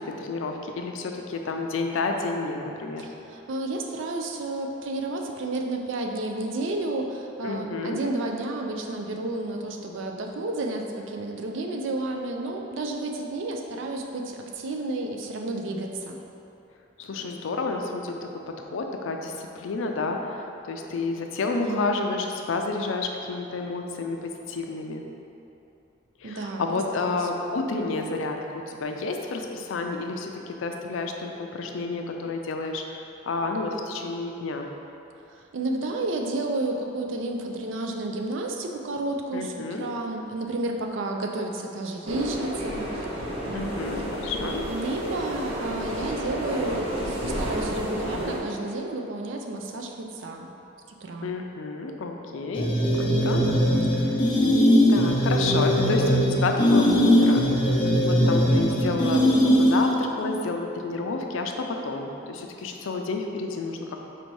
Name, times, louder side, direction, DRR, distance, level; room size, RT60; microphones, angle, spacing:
voice 1, 0.2-3.1 7.4-8.0 17.0-18.3 18.6-25.0 26.2-28.4 28.7-34.7 39.3-39.9 43.5-44.6 51.2-52.7 53.0-53.4 54.0-54.2 54.9-64.0, left 3 dB, 75° left, 3 dB, 0.4 m, -30 dB
voice 2, 3.0-16.2 21.5-22.0 26.2-27.3 35.3-50.5 51.0-51.3 54.1-54.2 58.7-59.3, right 2 dB, 70° right, 2 dB, 0.4 m, -31 dB
sound 1, 42.0-48.4, equal, 30° right, 0.7 m, -31 dB
sound 2, 52.5-60.0, equal, 25° left, 0.5 m, -20 dB
4.3 x 2.7 x 4.6 m, 2.8 s
head